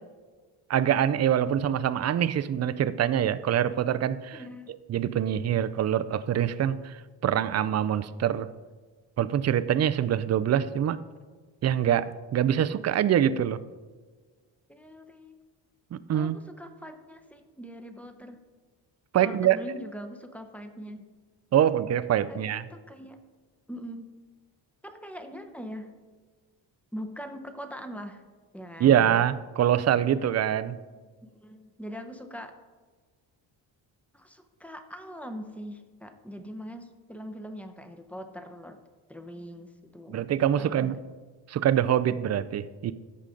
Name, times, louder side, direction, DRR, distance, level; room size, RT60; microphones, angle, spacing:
voice 1, 0.7-4.4 4.9-8.5 9.2-11.0 11.6-13.6 15.9-16.4 19.1-19.6 21.5-22.7 28.8-30.8 40.1-41.0 41.5-42.9, right 10 dB, 35° right, 14 dB, 0.4 m, -24 dB
voice 2, 4.3-4.7 14.7-15.4 16.1-18.4 19.2-21.1 22.3-23.2 23.7-24.1 24.8-25.9 26.9-28.2 28.5-29.1 31.2-32.5 34.1-38.8 39.1-40.2 40.5-40.9, equal, 5° left, 6 dB, 0.7 m, -42 dB
14.0 x 5.0 x 3.8 m, 1.4 s
cardioid pair, 100°, 46 cm